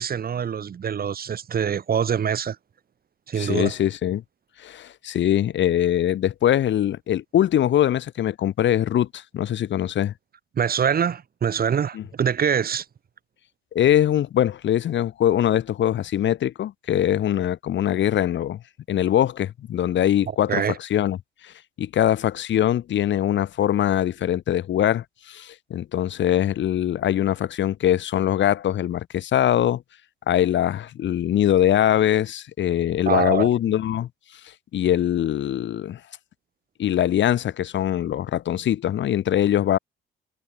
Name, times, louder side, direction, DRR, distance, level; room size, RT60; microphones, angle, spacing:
voice 1, 0.0-2.6 3.3-3.7 10.6-12.8 20.5-20.8 33.1-33.5, right 7 dB, 50° right, 2.2 m, -24 dB
voice 2, 3.4-4.2 4.6-10.1 11.9-12.0 13.7-18.6 18.9-21.2 21.4-21.5 21.8-29.8 30.3-34.1 34.7-36.0 36.8-39.8, left 11 dB, 65° left, 1.9 m, -22 dB
cardioid pair, 90°, 20 cm